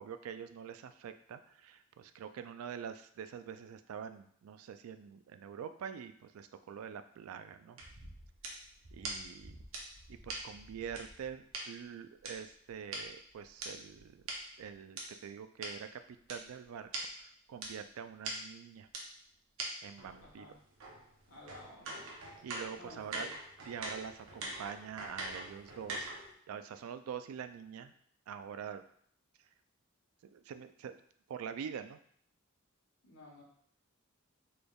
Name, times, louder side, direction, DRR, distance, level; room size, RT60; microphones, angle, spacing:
voice 1, 0.0-7.8 8.9-9.6 10.1-14.2 14.6-16.0 16.3-16.9 17.2-18.9 19.8-20.5 22.4-23.3 23.7-26.1 26.5-27.9 28.3-28.8 30.3-31.0 31.3-32.0, right 7 dB, 85° right, 10 dB, 0.3 m, -45 dB
sound 1, 7.8-11.6 12.2-15.0 15.6-15.7 16.3-16.4 16.6-16.7 16.9-17.1 17.6-17.7 18.2-18.3 18.9-19.0 19.6-19.7 20.0-26.3, right 2 dB, 70° right, 0.8 m, -43 dB
voice 2, 20.2-20.6 21.3-22.1 22.7-23.3 33.0-33.4, left 1 dB, 70° left, -4 dB, 1.2 m, -54 dB
4.1 x 3.3 x 2.3 m, 0.62 s
head